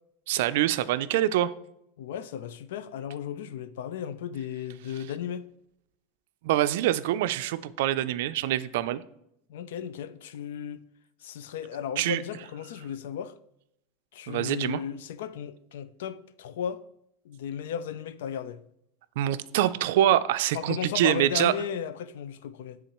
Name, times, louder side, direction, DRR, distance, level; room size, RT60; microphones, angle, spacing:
voice 1, 0.3-1.5 6.4-9.0 12.0-12.2 14.3-14.8 19.2-21.5, right 13 dB, 70° right, 0.4 m, -25 dB
voice 2, 2.0-5.4 9.5-10.8 11.2-13.4 14.1-16.8 17.2-18.6 20.5-22.8, left 8 dB, 85° left, 0.4 m, -35 dB
10.0 x 3.8 x 3.0 m
supercardioid pair, 160°, 0 cm